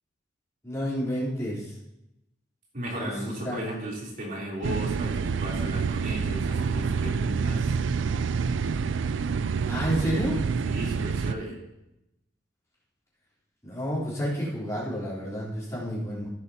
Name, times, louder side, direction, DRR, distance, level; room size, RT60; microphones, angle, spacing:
voice 1, 0.6-1.7 2.9-3.6 9.6-10.4 13.6-16.3, equal, 15° left, -9 dB, 3.5 m, -30 dB
voice 2, 2.7-7.7 10.7-11.6, right 1 dB, 45° right, -4 dB, 3.2 m, -35 dB
sound 1, 4.6-11.3, right 5 dB, 75° right, 0.4 m, -27 dB
15.0 x 9.5 x 2.8 m, 0.88 s
head